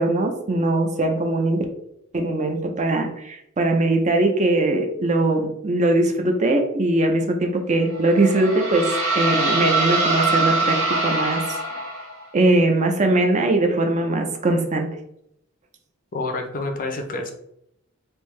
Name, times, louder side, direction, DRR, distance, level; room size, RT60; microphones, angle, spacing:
voice 1, 0.0-1.7 2.1-11.8 12.3-14.9, right 2 dB, 35° right, 4 dB, 0.5 m, -21 dB
sound 1, 7.9-12.2, right 2 dB, 85° right, 1.0 m, -23 dB
voice 2, 16.1-17.3, left 2 dB, 40° left, 4 dB, 0.5 m, -28 dB
3.5 x 2.7 x 3.1 m, 0.77 s
head